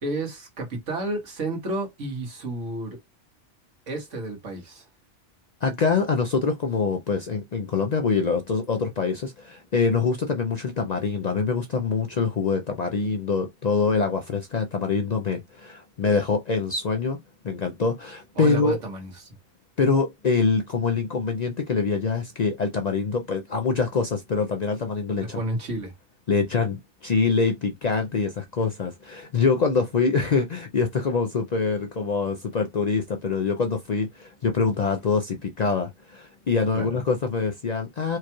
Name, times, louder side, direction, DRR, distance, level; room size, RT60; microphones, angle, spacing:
voice 1, 0.0-3.0 3.9-4.9 18.3-19.3 25.2-25.9 36.7-37.0, right 2 dB, 85° right, 1.8 m, -31 dB
voice 2, 5.6-17.2 17.4-18.8 19.8-25.4 26.3-38.2, left 4 dB, 55° left, 0.5 m, -25 dB
4.6 x 2.3 x 3.0 m
omnidirectional pair, 1.2 m